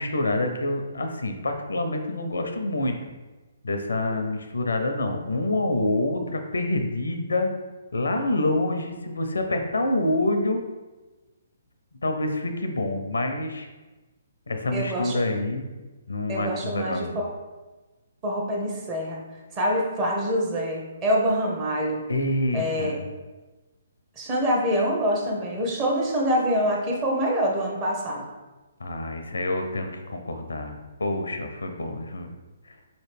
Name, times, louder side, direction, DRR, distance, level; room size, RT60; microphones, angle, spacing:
voice 1, 0.0-3.0 3.6-7.5 7.9-10.6 12.0-13.7 14.5-15.6 16.1-17.2 22.1-23.1 28.8-32.3 32.7-32.8, left 2 dB, 85° left, 6 dB, 0.5 m, -27 dB
voice 2, 14.7-15.2 16.3-17.3 18.2-19.2 19.5-22.0 22.5-23.0 24.2-28.2, equal, 30° right, -2 dB, 0.9 m, -25 dB
4.0 x 3.0 x 3.3 m, 1.2 s
figure-of-eight pair, 135°, 0 cm